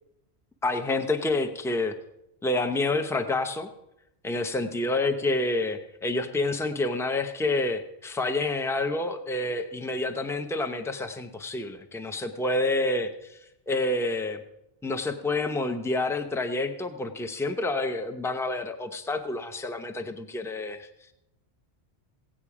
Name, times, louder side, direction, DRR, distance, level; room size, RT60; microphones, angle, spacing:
voice 1, 0.6-1.9 2.4-3.7 4.2-13.4 13.7-14.4 14.8-20.9, left 2 dB, 5° left, 7 dB, 0.6 m, -28 dB
16.5 x 8.9 x 4.9 m, 0.87 s
omnidirectional pair, 1.1 m